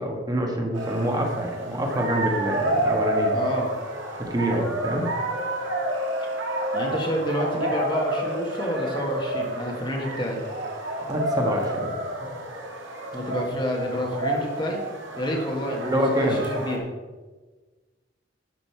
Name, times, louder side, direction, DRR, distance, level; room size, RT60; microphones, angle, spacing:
voice 1, 0.0-3.4 4.2-5.1 11.1-12.0 15.8-16.4, equal, 20° right, 2 dB, 1.4 m, -26 dB
sound 1, 0.7-16.8, right 1 dB, 80° right, 1.9 m, -29 dB
voice 2, 3.3-3.7 6.7-10.4 13.1-14.8 15.1-16.8, equal, 25° left, 0 dB, 1.5 m, -29 dB
12.0 x 6.6 x 4.6 m, 1.3 s
head